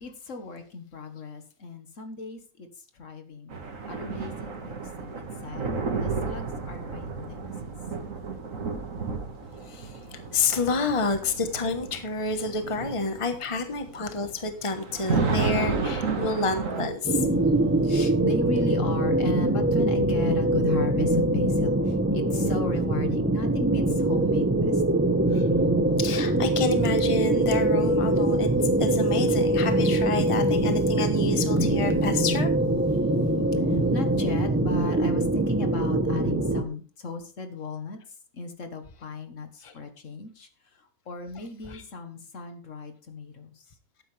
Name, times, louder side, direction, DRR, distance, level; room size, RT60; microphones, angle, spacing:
voice 1, 0.0-2.7 3.0-3.5 3.9-7.5 17.8-25.0 33.9-38.0 38.3-40.5 41.1-43.5, left 3 dB, 60° left, 7 dB, 1.7 m, -36 dB
sound 1, 3.5-16.9, right 4 dB, 65° right, 2.1 m, -32 dB
voice 2, 9.7-17.3 25.3-25.4 26.0-32.5 33.7-33.8 39.6-39.7 41.7-41.8, left 3 dB, 25° left, 7 dB, 1.2 m, -29 dB
sound 2, 17.0-36.6, right 1 dB, 10° right, 0.8 m, -23 dB
12.5 x 9.4 x 3.3 m, 0.36 s
omnidirectional pair, 1.5 m